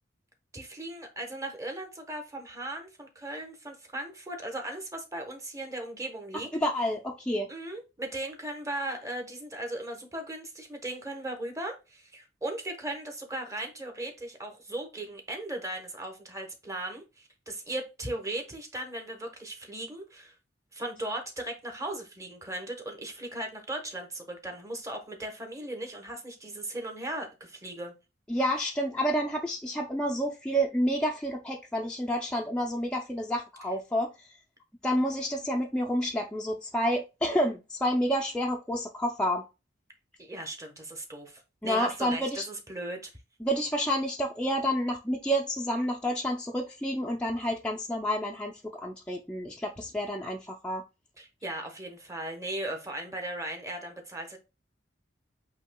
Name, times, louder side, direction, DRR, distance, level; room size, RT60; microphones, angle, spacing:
voice 1, 0.5-6.5 7.5-20.3 20.7-27.9 40.2-43.1 51.2-54.4, right 1 dB, 15° right, 1.0 m, -37 dB
voice 2, 6.5-7.5 28.3-34.3 34.8-39.4 41.6-42.5 43.4-50.8, equal, 5° left, 0.4 m, -29 dB
8.3 x 2.8 x 2.2 m
head